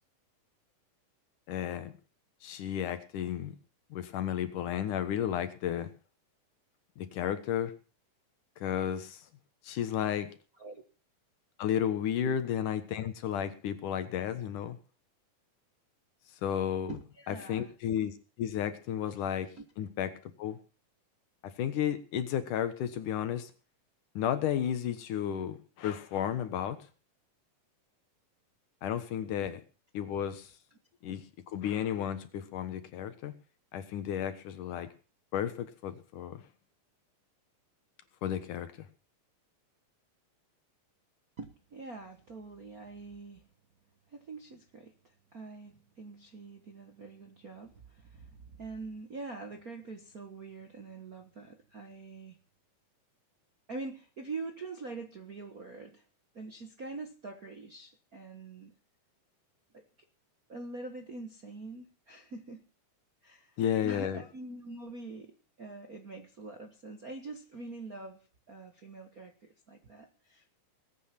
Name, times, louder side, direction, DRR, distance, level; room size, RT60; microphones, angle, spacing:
voice 1, 1.5-1.9 2.4-3.5 3.9-5.9 7.0-7.7 8.6-9.2 9.6-10.3 11.6-14.8 16.4-17.0 17.3-18.1 18.4-20.1 20.4-20.6 21.6-23.5 24.2-26.8 28.8-29.6 29.9-30.5 31.0-31.2 31.5-33.3 33.7-34.9 35.3-36.4 38.2-38.9 63.6-64.2, left 9 dB, 75° left, 10 dB, 2.9 m, -33 dB
voice 2, 16.9-17.7 19.6-19.7 29.4-29.5 41.4-43.4 44.1-52.4 53.7-56.0 56.3-58.7 59.7-59.8 60.5-62.6 63.2-63.6 63.8-70.5, right 3 dB, 50° right, 5 dB, 1.1 m, -44 dB
20.0 x 8.9 x 6.0 m, 0.36 s
omnidirectional pair, 3.7 m